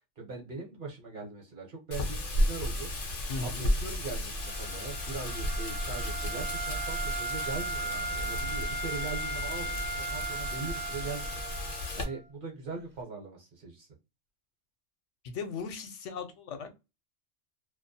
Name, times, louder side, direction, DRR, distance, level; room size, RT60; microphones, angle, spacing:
voice 1, 0.2-2.9 3.4-11.4 11.9-13.9, right 4 dB, 50° right, 0 dB, 0.8 m, -41 dB
Wind, 1.9-12.0, left 1 dB, 55° left, 0.7 m, -33 dB
voice 2, 3.3-3.6 15.2-16.7, left 4 dB, 80° left, 7 dB, 0.9 m, -37 dB
Wind instrument woodwind instrument, 4.4-12.2, right 3 dB, 15° right, 0.4 m, -37 dB
2.3 x 2.1 x 2.6 m, 0.26 s
omnidirectional pair, 1.2 m